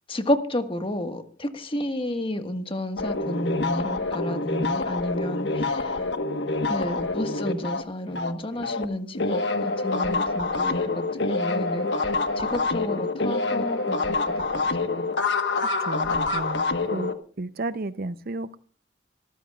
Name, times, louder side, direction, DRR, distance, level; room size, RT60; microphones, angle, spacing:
voice 1, 0.1-6.0 6.7-10.9 11.3-14.6, left 1 dB, 30° left, 1.6 m, -31 dB
sound 1, 3.0-8.9 9.1-17.1, left 3 dB, 80° left, 1.4 m, -26 dB
voice 2, 15.9-17.1 17.4-18.6, right 2 dB, 60° right, 0.7 m, -32 dB
25.5 x 14.0 x 2.4 m
head